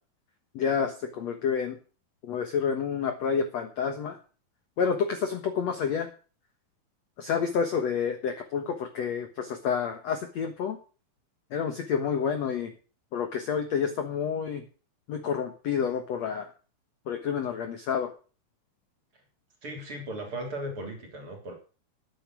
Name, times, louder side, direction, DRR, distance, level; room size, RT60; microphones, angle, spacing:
voice 1, 0.5-1.8 2.2-4.2 4.8-6.1 7.2-10.8 11.5-12.7 13.1-14.6 15.1-16.5 17.1-18.1, left 7 dB, 60° left, 7 dB, 1.9 m, -29 dB
voice 2, 19.6-21.5, right 1 dB, 35° right, 3 dB, 3.9 m, -37 dB
12.0 x 10.0 x 6.2 m, 0.37 s
omnidirectional pair, 4.7 m